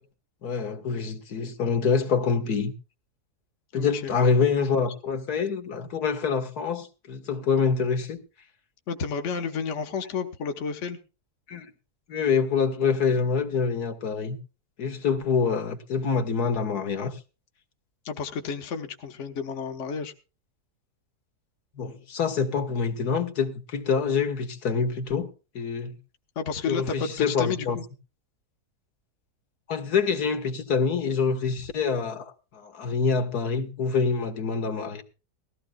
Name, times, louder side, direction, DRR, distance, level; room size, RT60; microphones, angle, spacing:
voice 1, 0.4-2.7 3.7-8.2 11.5-11.7 12.1-14.4 14.8-17.2 21.8-25.3 25.6-26.0 26.7-27.8 29.7-35.0, left 5 dB, 75° left, 1.9 m, -26 dB
voice 2, 3.8-4.1 8.9-11.0 18.0-20.1 26.4-27.8 31.4-31.5, left 5 dB, 50° left, 1.4 m, -31 dB
19.5 x 15.0 x 2.3 m
omnidirectional pair, 1.7 m